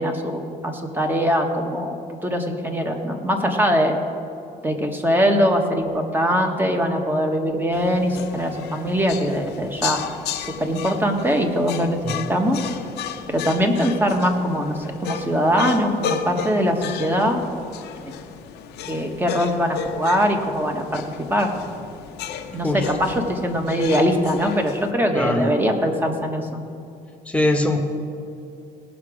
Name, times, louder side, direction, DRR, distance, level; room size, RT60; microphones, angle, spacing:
voice 1, 0.0-3.9 4.6-10.0 10.3-12.6 13.3-17.4 18.0-18.1 18.9-21.0 21.3-21.5 22.5-26.6, equal, 10° right, 3 dB, 1.3 m, -22 dB
sound 1, 7.7-24.9, left 8 dB, 80° left, 0.8 m, -34 dB
voice 2, 25.1-25.6 27.3-27.8, left 1 dB, 5° left, 3 dB, 1.2 m, -22 dB
17.5 x 6.0 x 5.0 m, 2.6 s
cardioid pair, 110°, 17 cm